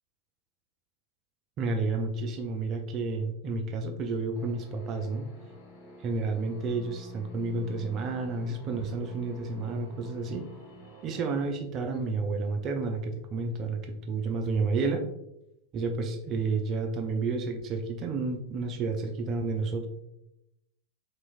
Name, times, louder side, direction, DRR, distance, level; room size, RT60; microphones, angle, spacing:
voice 1, 1.6-5.3 6.0-10.5 11.0-15.1 15.7-19.9, right 3 dB, 35° right, 4 dB, 0.3 m, -31 dB
sound 1, 4.3-11.5, equal, 35° left, 0.8 m, -49 dB
3.0 x 2.3 x 2.4 m, 0.84 s
figure-of-eight pair, 90°, 0 cm